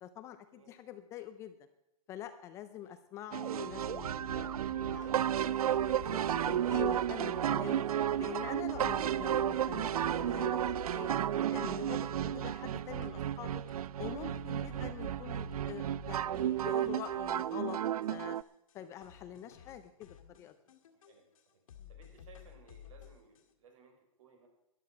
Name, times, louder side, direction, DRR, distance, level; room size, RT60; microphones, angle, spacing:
voice 1, 0.0-1.5 2.1-7.8 8.2-11.1 11.5-13.6 14.0-17.8 18.1-18.4 18.7-20.5 21.8-21.9, left 11 dB, 15° left, 10 dB, 0.5 m, -45 dB
sound 1, 3.3-18.4, right 11 dB, 85° right, 0.4 m, -33 dB
sound 2, 3.7-12.6 13.0-13.1 13.7-18.1 18.4-18.5 18.7-18.8 19.0-21.4 21.7-23.4, left 10 dB, 65° left, 1.8 m, -51 dB
voice 2, 21.9-24.5, right 4 dB, 60° right, 4 dB, 4.5 m, -60 dB
13.5 x 11.0 x 5.6 m, 0.85 s
hypercardioid pair, 155°, 18 cm